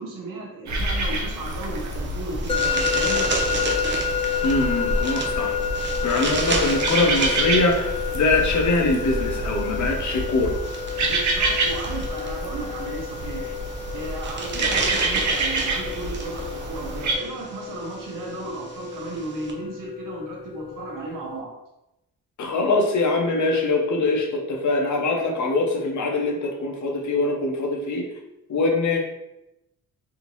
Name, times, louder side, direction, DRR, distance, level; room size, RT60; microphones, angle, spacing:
voice 1, 0.0-3.3 6.4-6.6 10.9-13.5 13.9-21.6, right 2 dB, 90° right, -1 dB, 1.0 m, -35 dB
sound 1, 0.7-17.2, right 2 dB, 65° right, 0.7 m, -28 dB
sound 2, 1.3-19.5, right 3 dB, 35° right, 0.6 m, -33 dB
Musical instrument, 2.5-21.4, left 7 dB, 20° left, 0.4 m, -30 dB
voice 2, 4.4-5.6 6.0-10.6 22.4-28.0 28.5-29.0, left 3 dB, 65° left, 2 dB, 0.8 m, -23 dB
3.5 x 2.6 x 3.0 m, 0.90 s
cardioid pair, 80°, 31 cm